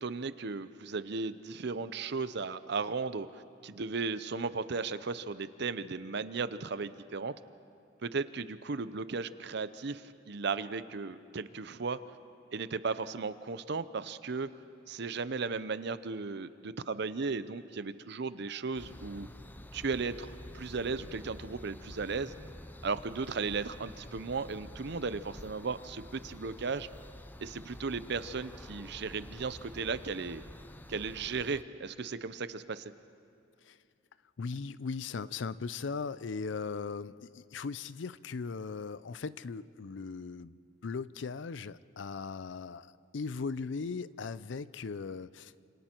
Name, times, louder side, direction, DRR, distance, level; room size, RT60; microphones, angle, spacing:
voice 1, 0.0-3.3 3.6-7.3 8.0-12.0 12.5-14.5 14.9-19.3 19.7-22.3 22.8-26.9 27.4-30.4 30.9-32.9, right 4 dB, 65° right, 14 dB, 0.7 m, -36 dB
sound 1, 18.7-31.6, left 1 dB, 10° left, 0.6 m, -49 dB
voice 2, 34.4-45.5, left 4 dB, 70° left, 17 dB, 0.5 m, -38 dB
29.0 x 27.0 x 4.5 m, 2.4 s
head